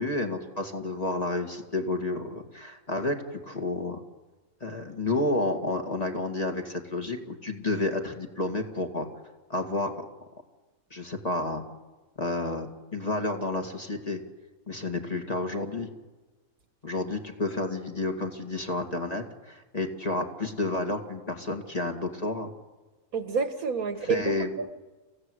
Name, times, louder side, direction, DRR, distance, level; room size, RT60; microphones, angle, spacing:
voice 1, 0.0-3.2 3.4-4.0 4.6-9.1 9.5-10.1 10.9-11.6 12.2-14.2 14.7-15.9 16.8-22.5 24.0-24.5, left 2 dB, 25° left, 3 dB, 2.2 m, -30 dB
voice 2, 23.1-24.7, right 5 dB, 70° right, 9 dB, 1.9 m, -29 dB
28.0 x 16.0 x 8.1 m, 1.2 s
omnidirectional pair, 1.6 m